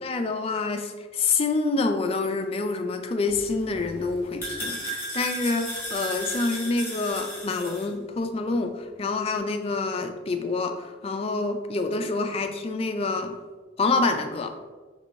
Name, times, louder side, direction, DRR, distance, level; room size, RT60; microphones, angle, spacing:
voice 1, 0.0-13.4 13.8-14.5, left 3 dB, 30° left, 6 dB, 0.3 m, -27 dB
sound 1, 3.3-7.9, equal, 10° left, 1.4 m, -35 dB
4.5 x 3.2 x 2.6 m, 1.3 s
head